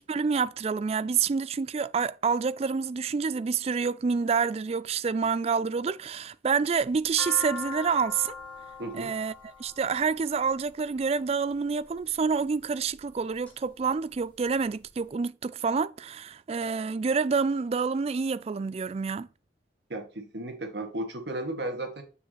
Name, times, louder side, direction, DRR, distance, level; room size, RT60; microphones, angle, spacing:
voice 1, 0.0-8.4 8.9-19.3, right 5 dB, 35° right, 0.3 m, -28 dB
sound 1, 6.7-11.0 11.8-12.3 12.9-13.5 13.9-14.0 14.1-15.0, left 4 dB, 10° left, 2.4 m, -40 dB
voice 2, 8.8-9.1 19.9-22.0, right 1 dB, 65° right, 2.1 m, -34 dB
7.2 x 6.2 x 3.1 m
head